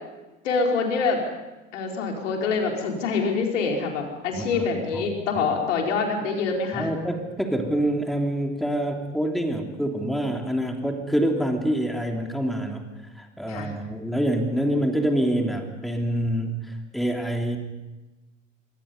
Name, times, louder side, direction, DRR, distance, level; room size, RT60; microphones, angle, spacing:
voice 1, 0.4-1.2 1.7-6.9 13.5-13.7, left 4 dB, 70° left, 1 dB, 4.7 m, -25 dB
voice 2, 4.3-4.7 4.9-5.1 6.7-12.8 13.1-17.6, right 1 dB, ahead, 2 dB, 3.2 m, -26 dB
27.0 x 24.0 x 5.5 m, 1.1 s
figure-of-eight pair, 70°, 39 cm